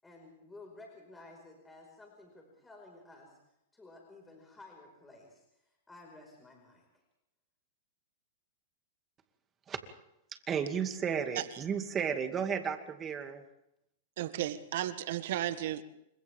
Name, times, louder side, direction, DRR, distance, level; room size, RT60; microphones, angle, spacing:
voice 1, 0.0-3.4 3.7-7.0, left 2 dB, 10° left, 1 dB, 5.2 m, -54 dB
voice 2, 10.5-13.4, right 7 dB, 25° right, 6 dB, 2.4 m, -33 dB
voice 3, 14.2-15.8, right 12 dB, 65° right, 11 dB, 1.5 m, -34 dB
29.0 x 25.5 x 3.6 m, 0.82 s
hypercardioid pair, 130°, 0 cm